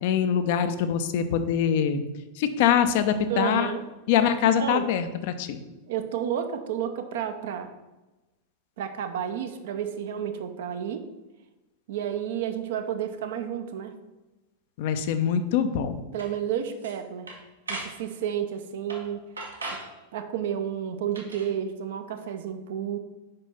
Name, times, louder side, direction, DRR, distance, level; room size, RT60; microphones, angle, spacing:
voice 1, 0.0-2.0 2.4-3.7 4.1-5.6 14.8-16.0, left 8 dB, 50° left, 9 dB, 0.6 m, -24 dB
voice 2, 3.3-3.8 4.6-4.9 5.9-7.7 8.8-11.0 11.9-13.9 16.1-17.3 17.7-19.2 19.7-19.8 20.1-23.0, right 9 dB, 55° right, 8 dB, 0.7 m, -31 dB
sound 1, 16.2-16.3 16.7-17.0 17.3-18.0 18.9-19.1 19.4-19.9 21.1-21.5, right 2 dB, 75° right, 1.2 m, -37 dB
5.3 x 5.3 x 5.4 m, 1.1 s
figure-of-eight pair, 90°, 0 cm